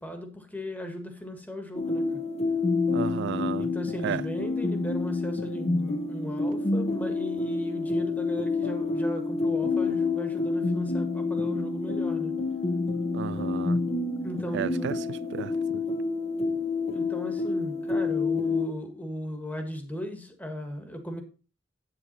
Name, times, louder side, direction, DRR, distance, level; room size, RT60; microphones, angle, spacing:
voice 1, 0.0-2.2 3.6-12.3 14.2-15.0 16.9-21.2, equal, 10° left, 1.7 m, -36 dB
sound 1, 1.7-18.7, left 3 dB, 35° left, 1.1 m, -28 dB
voice 2, 2.9-3.7 4.0-4.2 13.1-13.8 14.5-15.8, right 7 dB, 60° right, 0.3 m, -33 dB
8.5 x 8.0 x 4.2 m
head